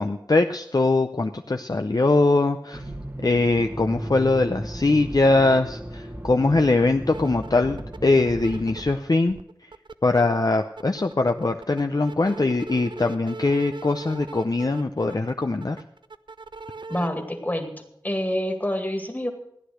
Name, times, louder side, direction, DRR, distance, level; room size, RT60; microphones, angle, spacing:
voice 1, 0.0-2.8 3.2-9.4 10.0-15.8, left 2 dB, 50° left, 5 dB, 0.6 m, -22 dB
Accelerating revving vroom, 2.7-9.0, right 1 dB, 25° right, 1.1 m, -36 dB
sound 1, 6.7-6.8 7.1-8.9 9.3-10.3 10.6-17.1, right 4 dB, 70° right, 0.5 m, -40 dB
voice 2, 16.9-17.7 18.0-19.3, left 1 dB, 20° left, 5 dB, 2.2 m, -27 dB
14.5 x 10.0 x 6.3 m, 0.77 s
wide cardioid pair, 45°, 8 cm